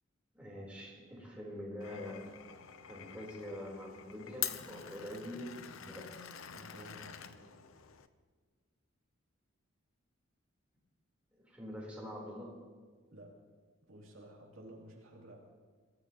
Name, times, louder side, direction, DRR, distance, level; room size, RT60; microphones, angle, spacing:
voice 1, 0.3-2.3 2.9-6.2 11.4-12.6, left 1 dB, 5° right, -4 dB, 3.8 m, -45 dB
Glass, 1.8-8.1, left 10 dB, 75° left, 0.7 m, -45 dB
voice 2, 6.5-7.6 13.1-13.4 13.8-15.4, right 1 dB, 75° right, -2 dB, 2.9 m, -53 dB
22.5 x 15.0 x 3.0 m, 1.5 s
head